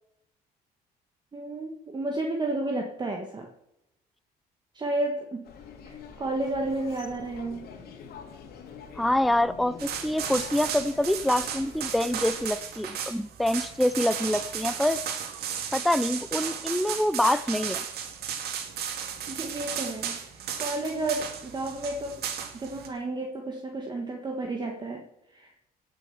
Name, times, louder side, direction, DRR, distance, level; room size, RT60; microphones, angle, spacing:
voice 1, 1.3-3.5 4.7-5.5 5.9-7.7 19.0-22.2 22.5-25.0 25.3-25.5, right 2 dB, 25° right, 2 dB, 1.7 m, -32 dB
sound 1, 5.4-12.5, left 6 dB, 70° left, 2.9 m, -45 dB
voice 2, 9.0-15.0 15.7-17.8, left 1 dB, ahead, 14 dB, 0.5 m, -26 dB
sound 2, 9.8-22.9, right 8 dB, 70° right, 2.2 m, -35 dB
17.0 x 6.6 x 7.1 m, 0.86 s
cardioid pair, 110°, 17 cm